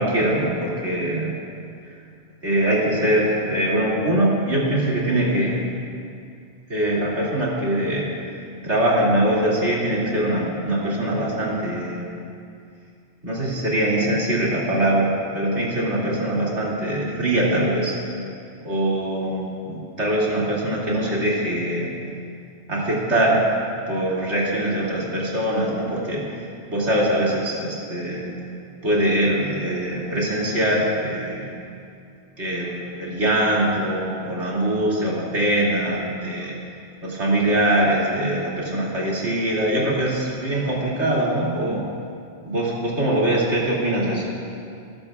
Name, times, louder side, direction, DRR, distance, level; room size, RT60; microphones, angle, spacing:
voice 1, 0.0-1.3 2.4-5.6 6.7-8.1 8.6-12.1 13.2-18.0 18.6-21.9 22.7-23.4 23.9-26.2 26.7-28.3 28.8-31.6 32.4-36.5 37.0-41.8 42.4-44.3, right 1 dB, 90° right, -6 dB, 3.0 m, -22 dB
21.0 x 12.0 x 2.4 m, 2.4 s
omnidirectional pair, 1.1 m